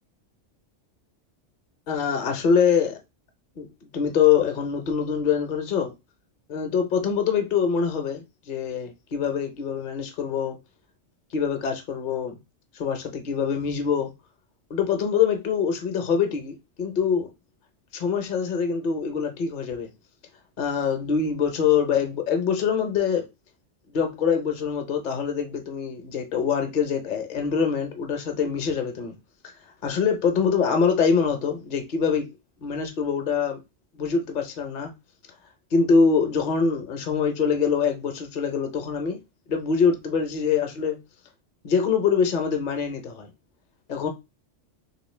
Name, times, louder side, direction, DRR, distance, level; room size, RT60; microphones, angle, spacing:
voice 1, 1.9-3.0 3.6-3.7 3.9-5.9 6.5-10.6 11.3-12.4 12.7-14.1 14.7-17.3 17.9-19.9 20.6-23.2 23.9-29.1 29.8-32.3 32.6-33.6 33.9-34.9 35.7-39.2 39.5-41.0 41.6-43.3 43.9-44.1, left 6 dB, 45° left, 0.8 m, -24 dB
3.2 x 3.0 x 3.2 m
omnidirectional pair, 1.3 m